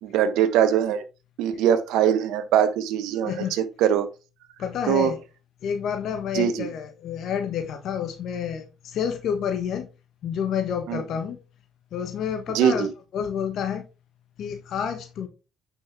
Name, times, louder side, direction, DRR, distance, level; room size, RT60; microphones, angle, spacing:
voice 1, 0.0-1.0 1.4-4.1 4.9-5.1 6.3-6.7 10.9-11.0 12.5-12.9, right 9 dB, 75° right, 1.2 m, -22 dB
voice 2, 4.6-5.2 5.6-9.9 10.2-11.4 11.9-12.9 13.1-13.8 14.4-15.3, left 8 dB, 65° left, 1.4 m, -29 dB
8.7 x 6.3 x 3.7 m
hypercardioid pair, 55°, 0 cm